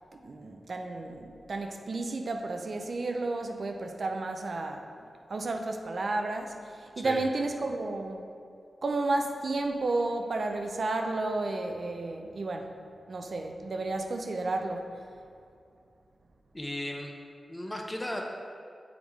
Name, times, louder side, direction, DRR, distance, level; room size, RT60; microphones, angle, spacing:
voice 1, 0.2-4.9 5.3-8.2 8.8-12.7 13.1-15.0, right 2 dB, 65° right, 4 dB, 0.5 m, -32 dB
voice 2, 16.5-17.1 17.5-18.2, left 1 dB, 20° left, 1 dB, 0.8 m, -35 dB
7.1 x 3.7 x 4.6 m, 2.4 s
cardioid pair, 60°, 0 cm